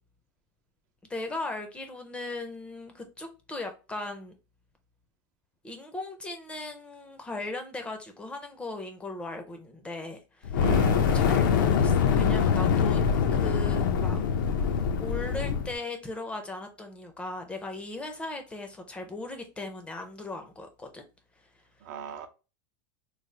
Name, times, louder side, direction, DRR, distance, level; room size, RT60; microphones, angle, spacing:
voice 1, 1.1-4.4 5.6-10.6 11.1-13.0 13.3-14.2 15.0-21.0, left 2 dB, 10° left, 0.5 m, -38 dB
Fire, 10.4-15.7, left 6 dB, 80° left, 0.6 m, -24 dB
voice 2, 10.6-11.2 21.8-22.3, right 8 dB, 60° right, 0.5 m, -36 dB
3.2 x 2.0 x 3.8 m
supercardioid pair, 150°, 11 cm